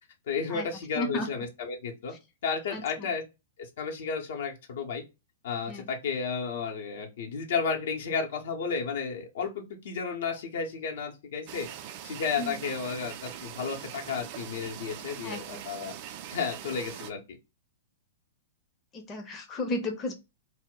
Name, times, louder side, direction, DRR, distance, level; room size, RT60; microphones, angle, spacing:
voice 1, 0.3-2.1 2.4-3.2 3.6-5.0 5.4-11.7 12.0-15.9 16.3-17.4, left 5 dB, 65° left, 2 dB, 0.7 m, -32 dB
voice 2, 1.0-1.3 2.7-3.1 5.7-5.9 12.4-12.6 15.2-15.6 18.9-20.1, left 1 dB, 20° left, 2 dB, 0.6 m, -34 dB
sound 1, 11.5-17.1, right 10 dB, 45° right, 0.3 m, -42 dB
2.1 x 2.0 x 3.7 m, 0.25 s
figure-of-eight pair, 110°, 0 cm